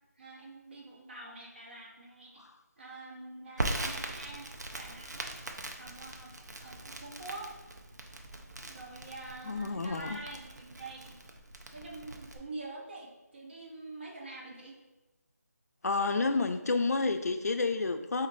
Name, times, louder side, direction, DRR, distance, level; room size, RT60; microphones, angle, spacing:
voice 1, 0.1-2.5 2.8-4.5 4.7-5.4 5.8-7.5 8.6-11.2 11.7-14.8, right 2 dB, 40° right, -3 dB, 0.8 m, -46 dB
Crackle, 3.6-12.4, right 1 dB, 80° right, 0.6 m, -41 dB
voice 2, 9.5-10.2 15.8-18.3, left 3 dB, 65° left, 8 dB, 0.4 m, -29 dB
5.8 x 2.5 x 2.6 m, 1.0 s
figure-of-eight pair, 170°, 9 cm